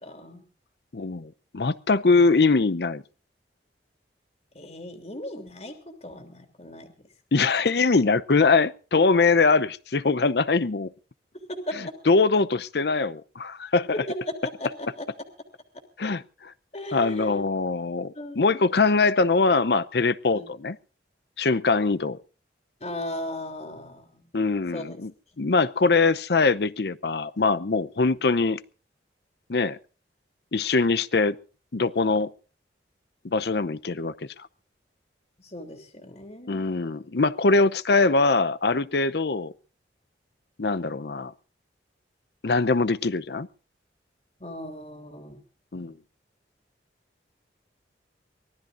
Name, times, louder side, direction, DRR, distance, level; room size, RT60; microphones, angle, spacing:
voice 1, 0.0-0.4 4.5-5.7 6.0-6.9 11.5-11.7 14.1-15.0 16.7-17.4 18.1-18.6 20.3-20.5 22.8-24.2 24.7-24.8 35.4-36.7 44.4-45.4 45.7-46.0, left 1 dB, 35° left, 3.1 m, -37 dB
voice 2, 0.9-3.0 7.3-10.9 11.8-14.0 16.0-16.5 16.9-20.8 21.4-22.2 24.3-25.1 25.4-28.6 29.5-29.8 30.5-31.4 31.7-32.3 33.2-34.1 36.5-39.5 40.6-41.3 42.4-43.5 45.7-45.9, left 3 dB, 65° left, 0.7 m, -22 dB
24.0 x 18.0 x 2.6 m
head